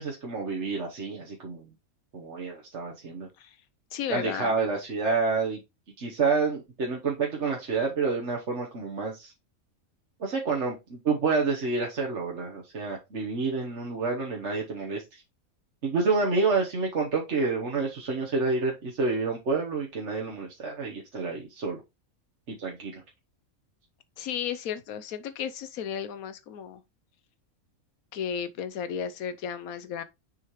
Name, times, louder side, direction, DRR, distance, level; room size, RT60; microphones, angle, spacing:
voice 1, 0.0-1.7 2.1-3.3 4.1-5.6 6.0-9.3 10.2-15.2 15.8-21.8 22.5-23.0, right 4 dB, 55° right, 1.5 m, -28 dB
voice 2, 3.9-4.5 24.2-26.8 28.1-30.0, left 8 dB, 85° left, 1.2 m, -34 dB
6.5 x 5.6 x 3.1 m
omnidirectional pair, 1.5 m